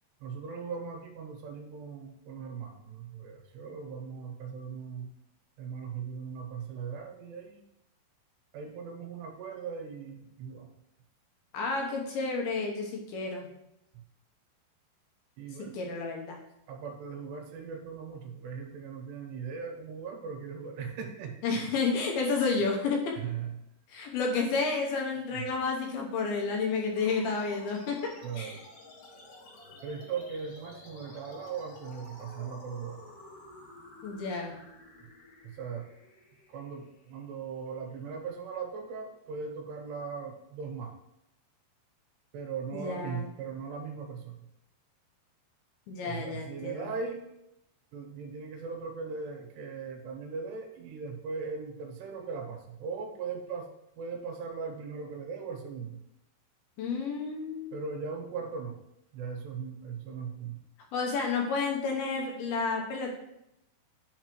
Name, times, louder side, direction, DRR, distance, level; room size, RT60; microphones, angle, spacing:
voice 1, 0.2-5.1 5.6-7.6 8.5-10.7 13.9-14.0 15.4-15.9 16.7-21.7 23.1-23.6 25.3-25.5 28.2-28.6 29.8-33.0 35.4-35.9 36.5-41.0 42.3-44.4 46.0-47.2 47.9-53.7 54.0-56.0 57.7-58.8 59.1-60.6, right 5 dB, 80° right, 3 dB, 3.1 m, -39 dB
voice 2, 11.5-13.5 15.6-16.4 21.4-23.1 23.9-28.6 34.0-34.5 42.7-43.3 45.9-46.8 56.8-57.7 60.9-63.1, left 4 dB, 75° left, 1 dB, 2.5 m, -31 dB
sound 1, 27.0-37.9, left 2 dB, 60° left, 1.6 m, -52 dB
11.0 x 4.6 x 3.0 m, 0.83 s
omnidirectional pair, 4.9 m